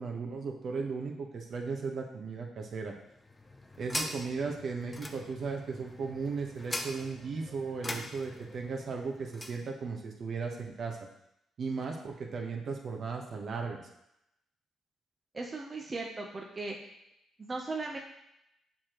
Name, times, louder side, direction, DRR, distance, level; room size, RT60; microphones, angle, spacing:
voice 1, 0.0-2.9 3.8-11.0 11.6-13.8, right 4 dB, 55° right, 1 dB, 1.1 m, -36 dB
sound 1, 3.0-9.6, left 1 dB, 20° left, 0.7 m, -42 dB
voice 2, 15.3-16.8 17.4-18.0, right 3 dB, 30° right, -1 dB, 0.8 m, -37 dB
7.1 x 4.9 x 3.0 m, 0.82 s
cardioid pair, 90°, 0 cm